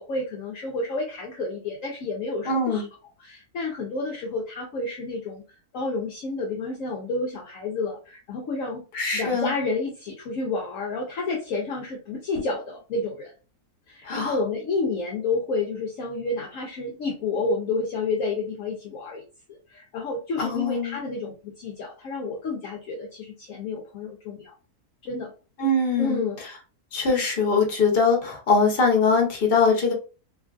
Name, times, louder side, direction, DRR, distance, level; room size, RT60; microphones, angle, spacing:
voice 1, 0.0-2.9 3.2-5.4 5.7-8.8 9.1-13.3 13.9-19.2 19.7-24.5 25.0-25.3 26.0-26.4, left 3 dB, 65° left, 0 dB, 0.9 m, -30 dB
voice 2, 2.5-2.8 8.9-9.5 14.0-14.3 20.4-21.0 25.6-26.2 26.9-29.9, left 4 dB, 45° left, 1 dB, 1.0 m, -22 dB
3.1 x 2.4 x 2.3 m, 0.34 s
omnidirectional pair, 1.6 m